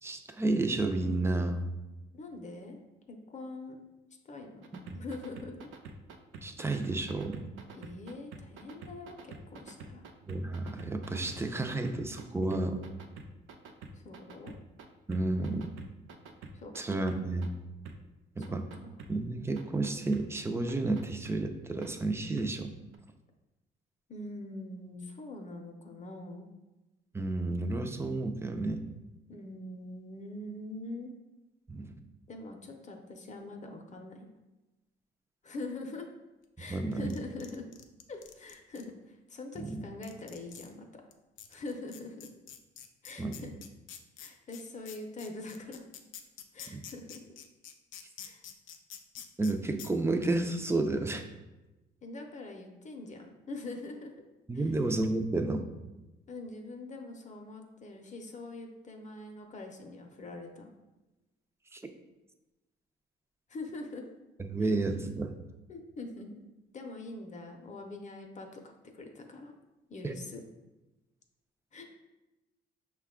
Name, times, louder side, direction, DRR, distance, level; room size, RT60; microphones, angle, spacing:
voice 1, 0.0-1.7 4.7-4.8 6.4-7.5 10.3-12.8 15.1-15.7 16.7-17.5 18.4-18.7 19.1-22.7 27.1-28.8 31.7-31.9 36.7-37.1 39.6-39.8 43.2-43.4 46.7-46.8 49.4-51.2 54.5-55.6 61.7-61.8 64.4-65.3 70.0-70.1, right 2 dB, 15° right, 6 dB, 0.4 m, -31 dB
voice 2, 2.1-2.8 3.1-3.8 4.2-4.6 4.9-5.7 7.7-10.0 13.9-14.5 16.5-17.1 18.4-18.9 24.1-26.5 29.3-31.1 32.3-34.3 35.4-36.1 36.6-37.7 38.1-41.0 41.5-42.3 43.0-43.5 44.2-45.8 46.5-47.2 48.2-48.4 52.0-54.1 54.5-54.7 56.3-60.7 63.5-64.0 64.6-64.7 65.7-66.4 66.7-69.5 69.9-70.4 71.7-71.8, left 2 dB, 35° left, 4 dB, 0.6 m, -43 dB
sound 1, 4.6-12.2 12.5-14.9 15.1-17.5 17.9-18.0 18.4-19.1 19.6-20.2 20.7-21.4 21.8-21.9 22.4-22.5 22.9-23.0, right 5 dB, 80° right, 0.5 m, -47 dB
sound 2, 36.7-38.8 39.6-39.7 40.0-40.7 41.1-41.2 41.4-49.5 49.8-49.9, left 9 dB, 80° left, 0.4 m, -47 dB
5.5 x 2.3 x 3.6 m, 1.0 s
cardioid pair, 90°, 20 cm